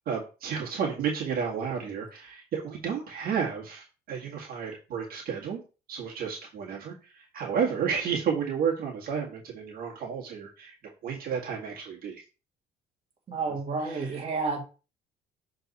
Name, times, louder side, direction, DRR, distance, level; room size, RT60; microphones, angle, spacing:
voice 1, 0.1-5.6 5.9-10.7 11.0-12.2 13.5-14.3, right 7 dB, 60° right, -1 dB, 2.0 m, -32 dB
voice 2, 13.3-14.6, right 4 dB, 35° right, -1 dB, 2.1 m, -30 dB
6.5 x 4.0 x 4.2 m, 0.33 s
cardioid pair, 110°, 17 cm